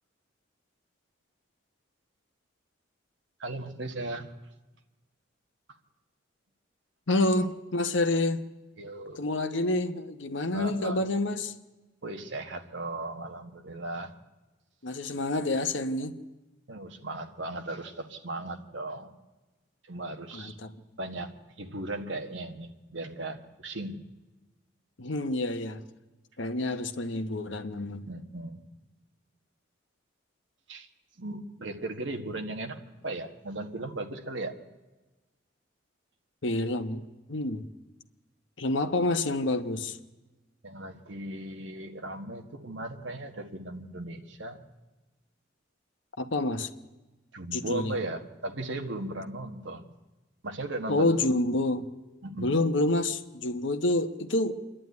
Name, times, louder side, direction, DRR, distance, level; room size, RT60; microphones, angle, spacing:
voice 1, 3.4-4.3 8.8-9.2 10.5-11.0 12.0-14.1 16.7-19.2 19.8-20.6 21.0-24.0 28.1-28.6 30.7-30.9 31.2-34.6 40.6-44.7 47.3-49.9 50.4-51.3 52.2-52.5, right 2 dB, 70° right, 1.5 m, -37 dB
voice 2, 7.1-8.5 9.2-11.5 14.8-16.2 20.3-20.7 25.0-25.8 26.4-28.1 36.4-37.7 38.6-40.0 46.2-46.7 47.5-47.9 50.9-51.9 52.4-54.6, left 2 dB, 70° left, 1.1 m, -28 dB
26.0 x 11.5 x 9.5 m
head